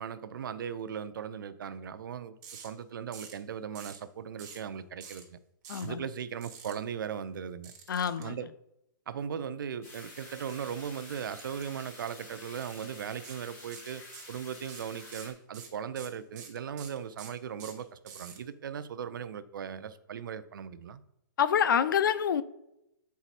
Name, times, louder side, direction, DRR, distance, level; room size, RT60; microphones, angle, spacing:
voice 1, 0.0-5.4 5.8-7.7 8.2-8.5 9.1-14.0 14.3-21.0, right 7 dB, 75° right, 12 dB, 0.6 m, -38 dB
sound 1, 2.4-2.7 3.1-3.4 3.7-4.0 4.4-4.7 5.0-5.2 5.6-5.9 6.4-6.7 7.6-8.2 11.4-11.6 11.9-12.1 12.5-12.8 13.2-13.4 13.7-14.3 14.6-18.4, right 7 dB, 25° right, 1.4 m, -47 dB
voice 2, 5.7-6.1 7.9-8.4 21.4-22.4, left 8 dB, 75° left, 15 dB, 0.5 m, -27 dB
sound 2, 9.8-15.3, left 1 dB, 25° left, 2.0 m, -49 dB
8.0 x 4.7 x 4.2 m, 0.83 s
hypercardioid pair, 160°, 11 cm